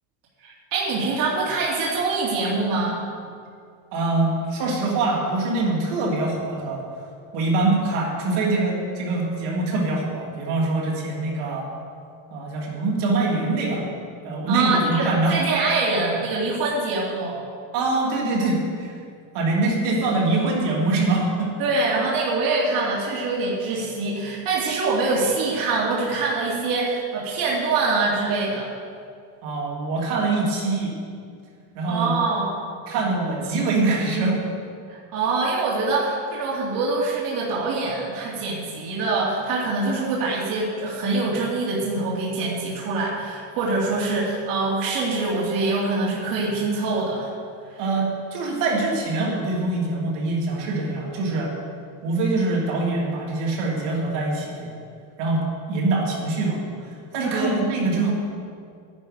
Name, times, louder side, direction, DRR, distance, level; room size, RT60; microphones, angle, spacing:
voice 1, 0.4-3.0 14.5-17.4 21.6-28.7 31.9-32.5 34.9-47.3 47.7-47.8 57.3-57.6, right 3 dB, 50° right, -5 dB, 2.6 m, -24 dB
voice 2, 3.9-6.8 7.3-11.7 12.3-13.8 14.2-15.4 17.7-19.0 19.3-21.5 29.4-30.9 31.7-32.1 32.9-34.4 47.8-51.5 52.0-54.7 55.2-55.4 55.7-58.1, right 2 dB, 65° right, -2 dB, 3.0 m, -24 dB
11.5 x 10.5 x 5.1 m, 2.3 s
cardioid pair, 140°, 44 cm